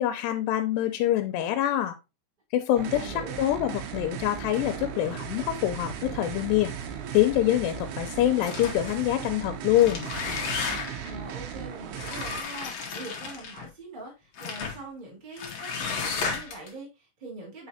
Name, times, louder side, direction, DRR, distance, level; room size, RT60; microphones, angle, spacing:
voice 1, 0.0-2.0 2.5-6.7 7.1-10.1, left 13 dB, 90° left, 2.9 m, -25 dB
voice 2, 2.7-3.7 11.0-17.7, right 2 dB, 10° right, 2.9 m, -43 dB
sound 1, 2.7-12.4, right 8 dB, 75° right, 2.9 m, -37 dB
sound 2, 4.5-9.9, right 6 dB, 50° right, 2.0 m, -46 dB
sound 3, 8.4-9.0 9.6-11.1 11.9-13.7 14.4-14.8 15.4-16.7, left 5 dB, 65° left, 1.6 m, -33 dB
8.2 x 5.5 x 2.8 m
omnidirectional pair, 4.8 m